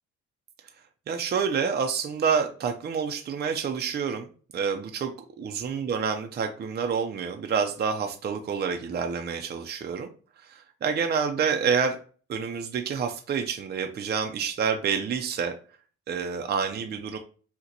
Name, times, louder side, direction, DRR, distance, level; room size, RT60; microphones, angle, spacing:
voice 1, 1.1-4.3 4.5-5.1 5.4-10.1 10.4-12.0 12.3-15.5 16.1-17.2, right 6 dB, 35° right, 4 dB, 0.4 m, -28 dB
2.9 x 2.1 x 3.8 m, 0.40 s
cardioid pair, 90°, 30 cm